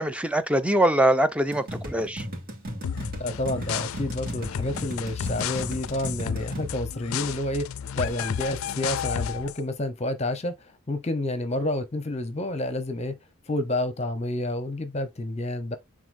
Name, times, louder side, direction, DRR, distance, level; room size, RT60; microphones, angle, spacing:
voice 1, 0.0-2.2, right 1 dB, 5° right, 0.5 m, -23 dB
sound 1, 1.5-6.7, equal, 45° right, 3.0 m, -36 dB
sound 2, 2.8-9.6, left 8 dB, 70° left, 0.4 m, -32 dB
voice 2, 3.2-7.7 8.0-13.1 13.5-15.8, left 1 dB, 30° left, 0.8 m, -29 dB
9.7 x 3.9 x 2.6 m
head